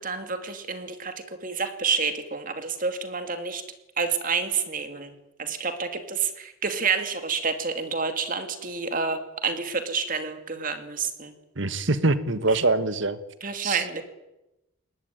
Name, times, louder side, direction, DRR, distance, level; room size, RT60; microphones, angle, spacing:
voice 1, 0.0-3.6 4.0-5.1 5.4-11.3 12.5-12.6 13.4-14.0, right 5 dB, 40° right, 7 dB, 2.6 m, -29 dB
voice 2, 11.6-13.2 13.6-13.8, right 2 dB, 60° right, 12 dB, 1.6 m, -24 dB
21.5 x 20.0 x 9.3 m, 0.94 s
head